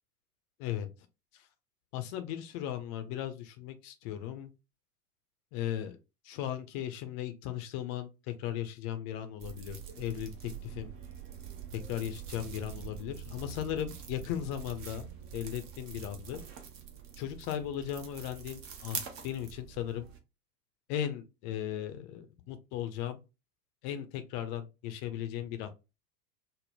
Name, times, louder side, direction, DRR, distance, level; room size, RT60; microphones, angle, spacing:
voice 1, 1.9-4.5 5.5-6.0 6.2-10.9 11.7-16.4 17.2-20.1 20.9-23.2 23.8-25.7, left 11 dB, 30° left, 0.5 m, -37 dB
sound 1, 9.4-20.2, right 8 dB, 30° right, 0.7 m, -45 dB
3.5 x 2.1 x 2.7 m
figure-of-eight pair, 90°, 47 cm